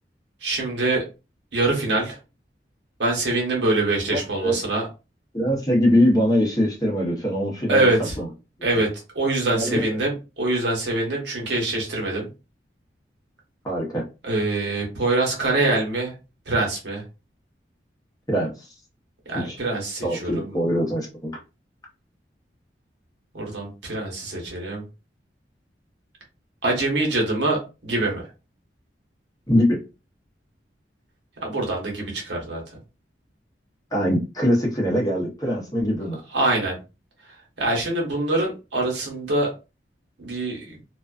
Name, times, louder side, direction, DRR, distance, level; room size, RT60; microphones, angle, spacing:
voice 1, 0.4-1.0 1.5-2.2 3.0-4.9 7.7-8.2 8.6-12.3 14.2-16.1 16.5-17.0 19.3-20.5 23.3-24.8 26.6-28.2 31.4-32.6 36.3-36.8 37.6-39.5 40.2-40.8, right 2 dB, 85° right, 0 dB, 1.0 m, -24 dB
voice 2, 4.1-4.5 5.3-8.3 8.7-8.8 9.5-10.0 13.6-14.0 18.3-18.7 19.3-19.6 20.0-21.4 29.5-29.8 33.9-36.2, equal, 20° left, -2 dB, 0.8 m, -23 dB
2.4 x 2.3 x 2.3 m, 0.29 s
head